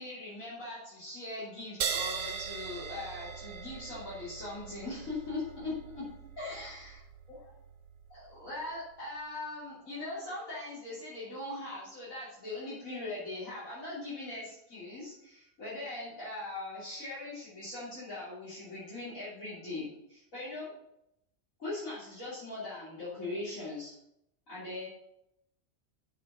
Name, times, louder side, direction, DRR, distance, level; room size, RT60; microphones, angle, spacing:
voice 1, 0.0-6.1 6.4-7.0 7.3-7.5 8.1-20.7 21.6-23.9 24.5-24.9, left 2 dB, 85° left, -11 dB, 3.5 m, -40 dB
sound 1, 1.8-8.8, right 7 dB, 65° right, 0.8 m, -40 dB
7.1 x 6.1 x 5.5 m, 0.81 s
omnidirectional pair, 1.4 m